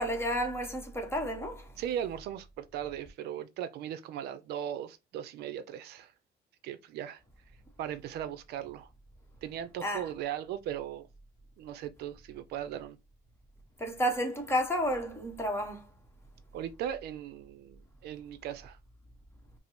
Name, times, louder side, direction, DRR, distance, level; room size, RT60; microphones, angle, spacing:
voice 1, 0.0-1.7 9.8-10.1 13.8-15.8, equal, 15° left, 1.0 m, -31 dB
voice 2, 1.8-6.1 6.6-7.2 7.8-8.9 9.4-11.1 11.6-13.0 16.5-18.8, right 10 dB, 75° right, 0.5 m, -38 dB
4.8 x 2.0 x 3.0 m
cardioid pair, 110°, 17 cm